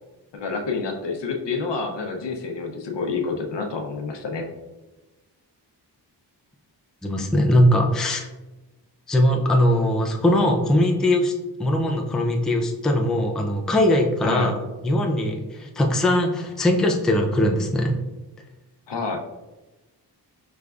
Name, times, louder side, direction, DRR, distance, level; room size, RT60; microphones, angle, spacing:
voice 1, 0.3-4.5 14.2-14.5 18.9-19.2, left 4 dB, 75° left, 3 dB, 0.7 m, -28 dB
voice 2, 7.0-8.3 9.1-11.3 11.6-14.6 14.8-18.0, left 1 dB, ahead, 1 dB, 0.3 m, -20 dB
5.1 x 3.3 x 2.4 m, 1.1 s
wide cardioid pair, 125°, 42 cm